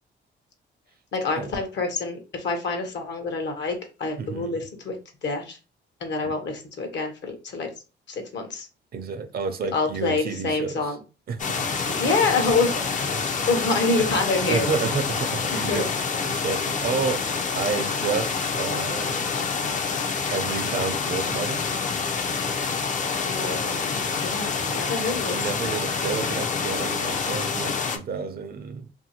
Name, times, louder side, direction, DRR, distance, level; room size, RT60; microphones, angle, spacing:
voice 1, 1.1-5.0 5.2-5.6 6.0-7.7 8.1-8.7 9.7-11.0 11.9-14.7 15.5-15.8 23.2-25.4, left 3 dB, 65° left, 0.9 m, -27 dB
voice 2, 4.2-4.6 6.2-6.3 8.9-11.0 11.3-11.7 13.1-13.3 14.5-19.3 20.3-21.6 25.3-28.9, right 5 dB, 50° right, 0.5 m, -30 dB
sound 1, 11.4-28.0, left 5 dB, 40° left, 0.5 m, -27 dB
2.6 x 2.6 x 2.8 m
cardioid pair, 90°, 20 cm